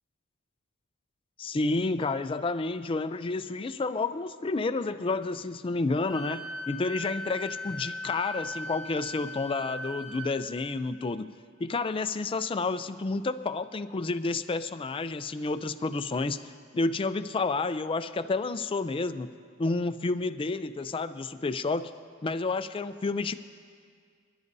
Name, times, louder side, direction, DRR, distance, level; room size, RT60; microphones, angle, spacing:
voice 1, 1.4-11.3 11.6-19.3 19.6-21.9 22.2-23.3, left 3 dB, 25° left, 11 dB, 0.4 m, -30 dB
Wind instrument woodwind instrument, 6.1-10.3, left 1 dB, 55° right, 2.5 m, -38 dB
29.0 x 11.0 x 2.7 m, 2.1 s
head